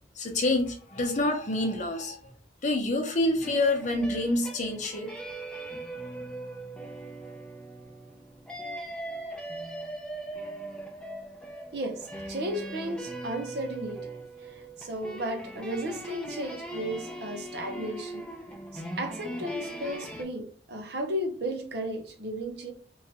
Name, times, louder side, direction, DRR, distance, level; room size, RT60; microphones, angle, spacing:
voice 1, 0.2-2.3 2.6-5.1, left 2 dB, 45° left, 0.7 m, -27 dB
sound 1, 3.4-20.2, right 1 dB, 5° left, 0.5 m, -40 dB
voice 2, 11.7-14.1 14.4-18.3 18.7-22.7, right 1 dB, 65° right, 0.7 m, -34 dB
3.1 x 2.4 x 2.8 m
head